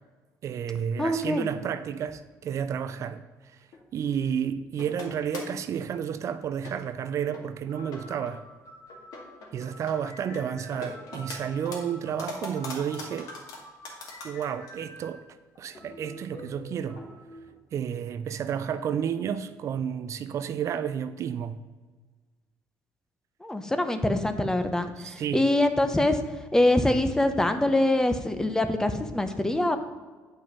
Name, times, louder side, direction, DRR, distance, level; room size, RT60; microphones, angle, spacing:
voice 1, 0.4-3.7 3.9-8.4 9.5-13.3 14.2-15.2 15.6-17.0 17.7-21.6 25.0-25.4, right 8 dB, 50° right, 0.5 m, -31 dB
voice 2, 1.0-1.5 23.4-26.2 26.5-29.8, left 1 dB, 10° left, 0.7 m, -24 dB
sound 1, 3.7-4.2 4.8-5.6 6.1-6.2 6.6-7.0 7.3-7.4 7.8-8.4 8.9-10.0 10.3-11.4 11.6-14.7 15.0-15.1 15.5-15.6 15.9-16.0 16.9-17.1 17.5-17.6, left 3 dB, 70° left, 2.2 m, -41 dB
sound 2, 7.0-7.1 7.7-15.2 15.7-17.4, left 1 dB, 50° left, 1.9 m, -48 dB
9.1 x 5.4 x 5.4 m
cardioid pair, 120°, 6 cm